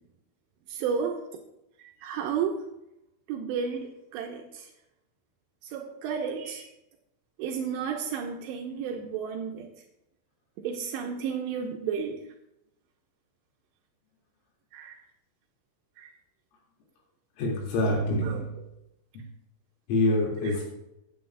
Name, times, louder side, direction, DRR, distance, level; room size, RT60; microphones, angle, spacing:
voice 1, 0.7-1.2 1.8-2.6 3.3-4.7 5.6-6.7 7.4-9.7 10.6-12.2 14.7-15.0 16.0-16.1 18.2-18.4 20.4-20.6, right 6 dB, 90° right, 2 dB, 2.4 m, -32 dB
voice 2, 17.4-18.5 19.9-20.6, left 1 dB, 80° left, -2 dB, 5.0 m, -26 dB
15.5 x 9.4 x 2.3 m, 0.85 s
omnidirectional pair, 5.8 m